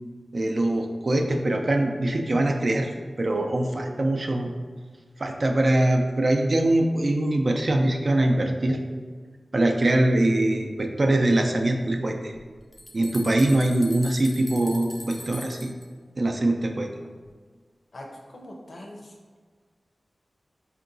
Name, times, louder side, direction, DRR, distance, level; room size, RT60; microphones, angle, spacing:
voice 1, 0.3-2.9 3.2-4.5 5.2-8.8 9.5-12.3 12.9-15.7 16.2-16.9, right 1 dB, 55° right, 3 dB, 0.4 m, -23 dB
sound 1, 12.3-12.4 12.7-15.9, left 1 dB, 20° left, 0.4 m, -41 dB
voice 2, 17.9-19.2, left 1 dB, 70° left, 0 dB, 0.5 m, -42 dB
4.5 x 2.8 x 2.6 m, 1.5 s
wide cardioid pair, 80°, 0 cm